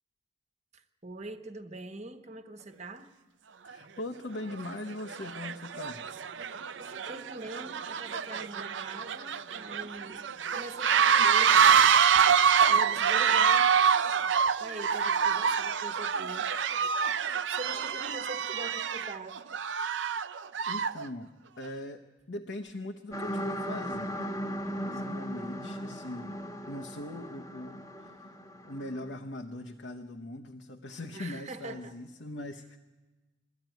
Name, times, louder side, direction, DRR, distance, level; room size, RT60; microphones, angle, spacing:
voice 1, 0.7-3.1 6.8-10.2 10.5-11.8 12.4-13.7 14.6-16.5 17.5-19.4 25.0-25.3 31.1-31.9, right 2 dB, 40° right, 1.2 m, -43 dB
voice 2, 3.6-6.0 20.7-24.3 24.8-28.3 28.6-32.8, left 1 dB, 70° left, 1.0 m, -41 dB
sound 1, 3.7-3.8 4.5-4.7 5.1-21.1, right 7 dB, 90° right, 0.6 m, -26 dB
sound 2, 23.1-29.1, equal, 20° left, 1.2 m, -37 dB
22.0 x 13.5 x 9.1 m
head